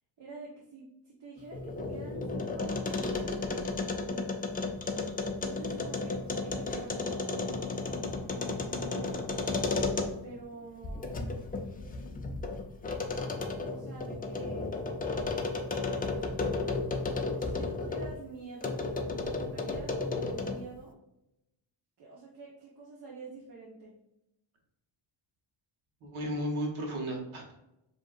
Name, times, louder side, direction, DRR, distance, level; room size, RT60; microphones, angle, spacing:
voice 1, 0.2-4.5 5.4-9.3 10.2-11.1 13.7-14.7 16.9-18.8 19.4-21.0 22.0-23.9, right 3 dB, 60° right, -5 dB, 1.2 m, -47 dB
sound 1, 1.4-10.4 10.8-18.1 18.6-20.7, left 3 dB, 20° left, 0.3 m, -33 dB
voice 2, 26.0-27.5, equal, 85° right, 1 dB, 1.4 m, -34 dB
7.5 x 2.8 x 2.5 m, 0.86 s
wide cardioid pair, 170°, 47 cm